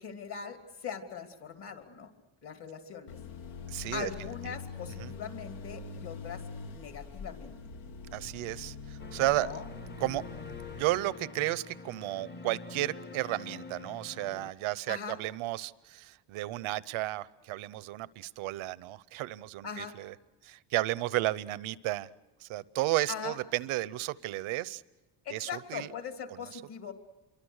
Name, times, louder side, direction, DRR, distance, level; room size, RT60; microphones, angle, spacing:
voice 1, 0.0-2.1 2.4-3.2 3.9-6.4 6.7-7.5 9.3-9.6 14.9-15.2 19.6-19.9 23.1-23.4 25.2-26.9, left 7 dB, 55° left, 5 dB, 3.2 m, -41 dB
sound 1, 3.1-10.8, left 5 dB, 80° left, 1.6 m, -44 dB
voice 2, 3.7-4.1 4.5-4.6 4.9-5.1 8.1-9.6 10.0-10.2 10.5-20.1 20.4-22.1 22.4-24.8 25.3-25.9 26.3-26.6, right 17 dB, 80° right, 18 dB, 0.9 m, -33 dB
sound 2, 9.0-14.5, left 3 dB, 20° left, 0.9 m, -46 dB
27.5 x 23.5 x 6.5 m, 1.1 s
cardioid pair, 100°, 48 cm